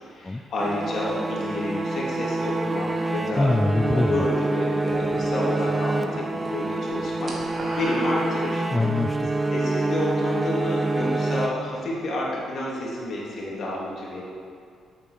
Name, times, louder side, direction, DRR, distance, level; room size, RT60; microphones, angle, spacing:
voice 1, 0.1-7.3 7.7-8.6 9.5-14.2, left 1 dB, 60° left, -4 dB, 3.0 m, -30 dB
sound 1, 0.6-12.1, right 2 dB, 25° right, 0.7 m, -27 dB
voice 2, 3.4-4.3 8.7-9.3, left 2 dB, 15° left, 6 dB, 0.4 m, -23 dB
sound 2, 4.9-5.9 6.2-6.5 6.8-8.9, right 1 dB, 40° right, 2.3 m, -38 dB
8.3 x 7.7 x 6.7 m, 2.2 s
cardioid pair, 90°, 0 cm